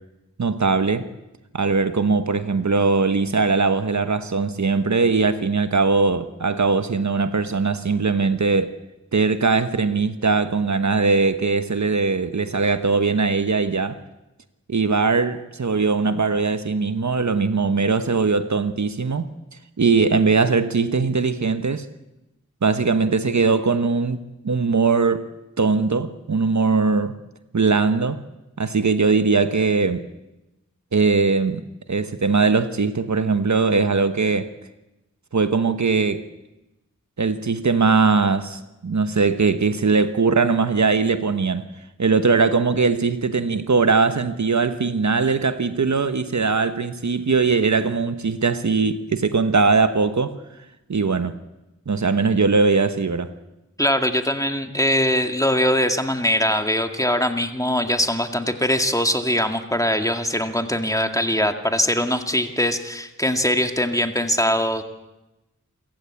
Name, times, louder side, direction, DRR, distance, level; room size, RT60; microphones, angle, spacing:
voice 1, 0.4-1.1 1.5-8.8 9.1-14.0 14.7-19.3 19.8-21.9 22.6-25.3 25.6-27.1 27.5-28.2 28.6-30.1 30.9-31.6 31.9-34.5 35.3-36.3 37.2-41.7 42.0-50.4 50.9-51.3 51.9-53.3, right 4 dB, 65° right, 1.1 m, -20 dB
voice 2, 53.8-64.8, equal, 10° left, 2.1 m, -22 dB
27.5 x 15.5 x 8.5 m
wide cardioid pair, 45°, 31 cm